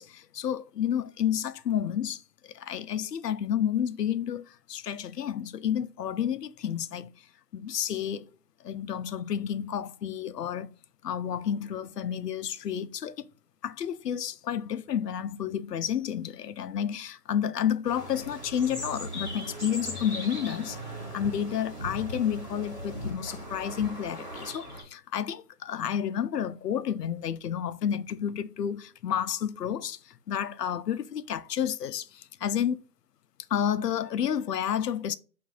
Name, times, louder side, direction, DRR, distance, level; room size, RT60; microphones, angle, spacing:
voice 1, 0.0-7.1 7.5-8.3 8.6-10.7 11.0-13.3 13.6-20.8 21.1-32.8 33.5-35.1, left 9 dB, 85° left, 0.6 m, -30 dB
sound 1, 17.8-24.8, equal, 10° right, 1.7 m, -38 dB
7.0 x 2.6 x 2.3 m
hypercardioid pair, 165°, 47 cm